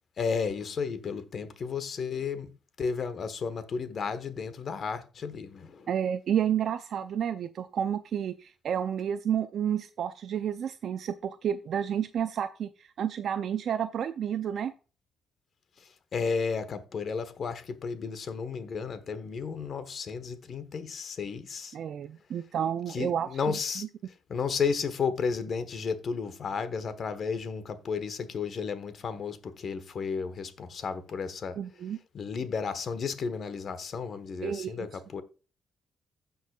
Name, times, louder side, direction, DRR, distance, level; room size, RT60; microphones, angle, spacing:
voice 1, 0.2-2.5 2.8-5.9 15.8-21.8 22.9-23.8 24.3-31.6 32.1-35.2, left 5 dB, 55° left, 1.2 m, -33 dB
voice 2, 5.9-14.7 21.7-23.9 31.6-32.0 34.4-34.9, right 9 dB, 65° right, 0.5 m, -31 dB
16.0 x 5.4 x 2.4 m
cardioid pair, 90°, 0 cm